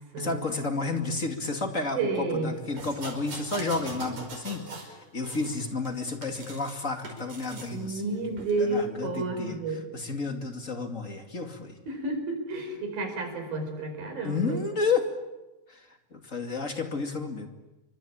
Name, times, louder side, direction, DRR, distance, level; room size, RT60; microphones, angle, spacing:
voice 1, 0.2-8.3 8.6-11.8 14.2-15.1 15.7-17.5, left 3 dB, 25° left, 5 dB, 2.3 m, -31 dB
voice 2, 2.0-2.5 7.7-9.9 11.9-14.6, right 3 dB, 90° right, 6 dB, 6.7 m, -30 dB
sound 1, 2.8-4.9 5.2-6.7 7.0-7.7 8.4-8.5, right 3 dB, 55° right, 6.4 m, -41 dB
27.5 x 24.5 x 8.8 m, 1.1 s
omnidirectional pair, 4.0 m